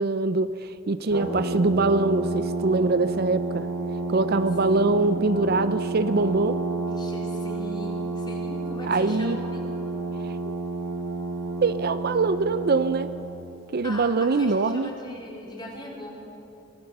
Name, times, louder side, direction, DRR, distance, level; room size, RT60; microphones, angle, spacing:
voice 1, 0.0-3.7 4.1-6.6 8.8-9.4 10.2-10.6 11.6-13.1 13.7-14.9, right 3 dB, 50° right, 12 dB, 0.6 m, -23 dB
Brass instrument, 1.1-13.4, right 2 dB, 80° right, 4.7 m, -30 dB
voice 2, 7.0-9.7 13.8-16.1, equal, 20° left, -2 dB, 4.0 m, -39 dB
25.5 x 17.5 x 6.7 m, 2.9 s
head